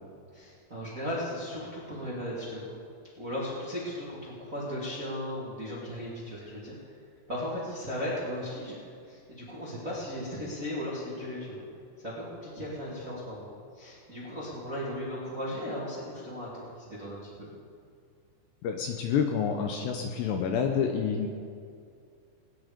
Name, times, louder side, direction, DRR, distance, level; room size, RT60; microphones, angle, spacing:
voice 1, 0.3-2.8 3.2-6.9 7.3-11.6 12.0-13.5 13.7-17.5, equal, 30° right, -6 dB, 1.6 m, -36 dB
voice 2, 18.6-21.3, left 7 dB, 75° left, 3 dB, 2.7 m, -28 dB
20.0 x 9.9 x 5.1 m, 2.3 s
omnidirectional pair, 5.6 m